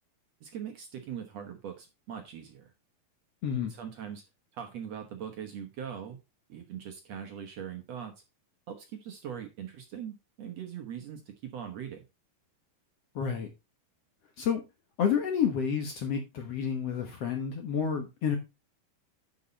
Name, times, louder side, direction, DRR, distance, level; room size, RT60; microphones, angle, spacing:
voice 1, 0.4-2.7 3.6-4.2 4.5-6.2 6.5-8.1 8.7-12.1, right 8 dB, 60° right, 4 dB, 1.9 m, -41 dB
voice 2, 3.4-3.7 13.2-13.5 14.4-14.6 15.0-18.4, left 7 dB, 60° left, 4 dB, 1.9 m, -29 dB
11.0 x 5.6 x 4.1 m, 0.25 s
omnidirectional pair, 4.0 m